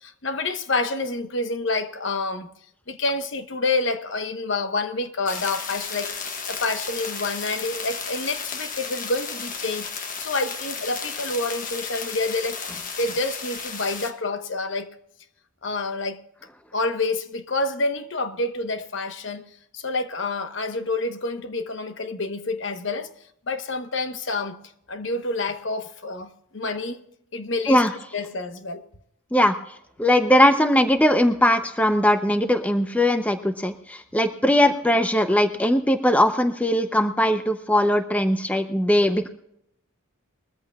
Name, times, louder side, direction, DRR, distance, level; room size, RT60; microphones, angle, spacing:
voice 1, 0.0-2.5 2.9-9.9 10.2-14.9 15.6-16.2 16.7-23.1 23.5-24.6 24.9-27.0 27.3-27.8 28.1-28.9, left 3 dB, 60° left, 1.0 m, -28 dB
sound 1, 5.3-14.1, left 5 dB, 40° left, 1.3 m, -33 dB
voice 2, 30.0-39.3, left 1 dB, 5° left, 0.6 m, -20 dB
22.0 x 14.0 x 2.3 m
head